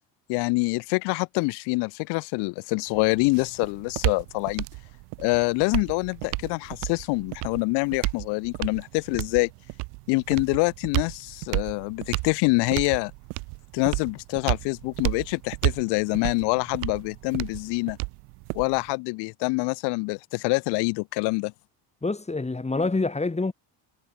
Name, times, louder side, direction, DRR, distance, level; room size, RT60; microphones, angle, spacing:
voice 1, 0.3-4.7 5.2-9.5 10.1-13.1 13.7-18.0 18.5-21.5, left 28 dB, 85° left, 1.8 m, -26 dB
sound 1, 2.9-18.9, right 31 dB, 85° right, 0.7 m, -32 dB
voice 2, 22.0-23.5, left 3 dB, 15° left, 3.6 m, -26 dB
supercardioid pair, 95°, 40 cm